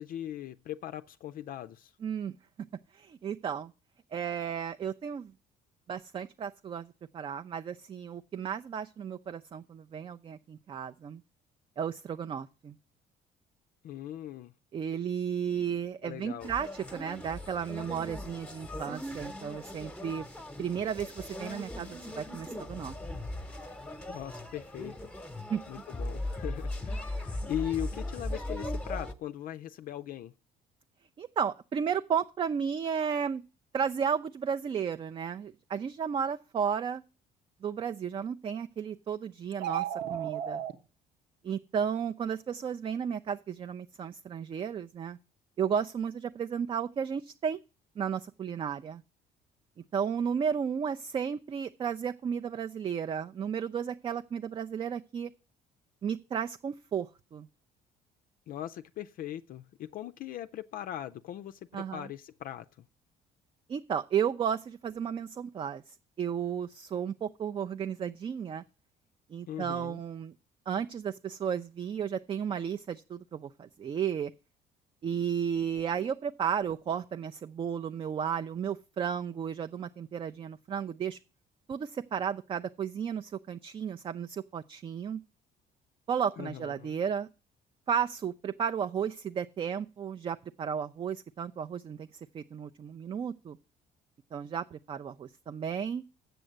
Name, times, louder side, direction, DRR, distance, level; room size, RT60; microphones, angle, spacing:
voice 1, 0.0-1.9 13.8-14.5 16.0-16.5 24.1-25.1 25.7-30.3 58.5-62.7 69.5-70.0 86.4-87.0, left 11 dB, 55° left, 0.4 m, -39 dB
voice 2, 2.0-2.3 2.9-3.7 4.1-5.3 5.9-11.2 11.8-12.8 14.7-20.3 20.6-23.0 25.5-25.6 31.2-33.4 33.7-37.0 37.6-40.6 41.4-45.2 45.6-47.6 48.0-49.0 49.9-55.3 56.0-57.5 61.7-62.1 63.7-68.6 69.3-70.3 70.7-74.3 75.0-81.2 81.7-85.2 86.1-87.3 87.9-92.1 92.3-93.6 94.3-96.0, right 7 dB, 30° right, 0.4 m, -33 dB
sound 1, 16.4-29.1, left 1 dB, 5° left, 0.9 m, -39 dB
sound 2, 39.5-40.7, right 10 dB, 75° right, 1.1 m, -33 dB
7.9 x 6.2 x 7.7 m
cardioid pair, 110°, 17 cm